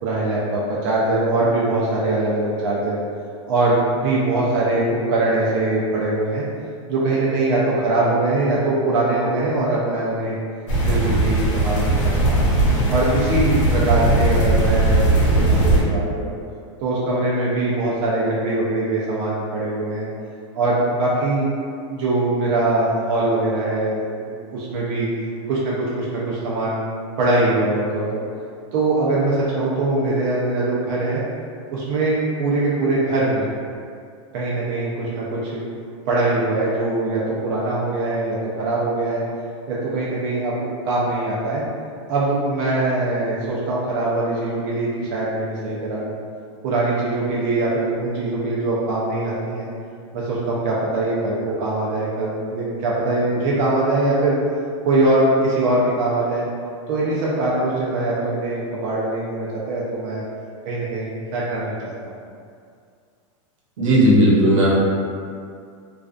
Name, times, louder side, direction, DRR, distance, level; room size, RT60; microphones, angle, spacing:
voice 1, 0.0-3.0 3.5-6.5 6.9-10.4 10.8-12.4 12.9-16.3 16.8-20.1 20.5-21.5 21.9-25.1 25.5-26.8 27.2-28.2 28.7-31.2 31.7-33.5 34.3-35.6 36.1-39.2 39.7-41.6 42.1-46.1 46.6-49.7 50.1-54.4 54.8-56.5 56.9-60.2 60.7-62.2, right 2 dB, 45° right, -6 dB, 0.4 m, -22 dB
sound 1, 10.7-15.8, right 2 dB, 75° left, 0.8 m, -18 dB
voice 2, 63.8-64.7, equal, 85° right, -6 dB, 0.8 m, -15 dB
2.3 x 2.3 x 2.4 m, 2.3 s
supercardioid pair, 150°, 16 cm